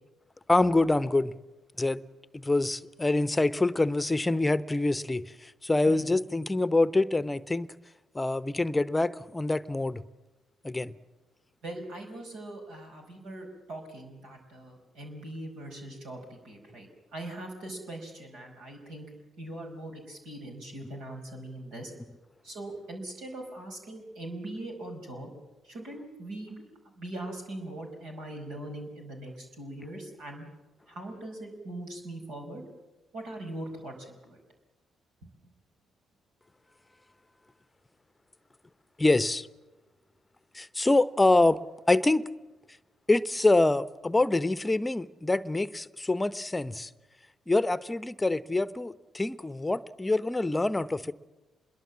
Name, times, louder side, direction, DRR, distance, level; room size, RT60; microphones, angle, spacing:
voice 1, 0.5-1.3 1.8-2.0 2.3-7.7 8.1-10.0 10.6-10.9 39.0-39.5 40.5-41.6 41.9-42.2 43.1-46.9 47.5-51.1, left 2 dB, 20° left, 0.9 m, -25 dB
voice 2, 11.6-19.0 19.4-21.9 22.4-25.3 25.6-26.6 26.9-30.4 30.9-32.6 33.1-34.4 35.2-35.3, right 1 dB, 65° right, 5.1 m, -41 dB
26.0 x 22.0 x 7.4 m
figure-of-eight pair, 40°, 0 cm